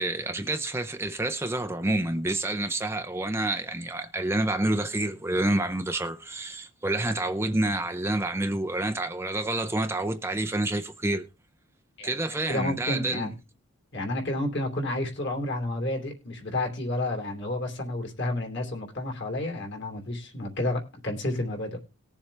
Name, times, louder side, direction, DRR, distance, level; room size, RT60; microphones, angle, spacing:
voice 1, 0.0-11.3 12.0-13.3, right 2 dB, 10° right, 0.5 m, -28 dB
voice 2, 12.5-13.3 13.9-21.8, left 1 dB, 50° left, 3.1 m, -30 dB
19.5 x 7.2 x 3.3 m
head